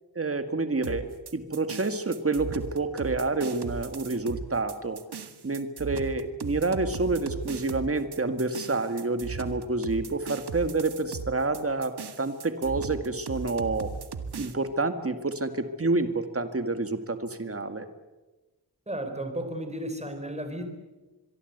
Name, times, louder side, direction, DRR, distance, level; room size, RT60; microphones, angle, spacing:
voice 1, 0.2-5.0 5.4-13.9 14.4-17.9, right 3 dB, 35° right, 9 dB, 2.0 m, -28 dB
sound 1, 0.8-14.5, right 5 dB, 70° right, 1.8 m, -38 dB
voice 2, 18.9-20.7, right 1 dB, 15° right, 7 dB, 4.4 m, -34 dB
25.0 x 23.0 x 8.2 m, 1.2 s
wide cardioid pair, 100°, 40 cm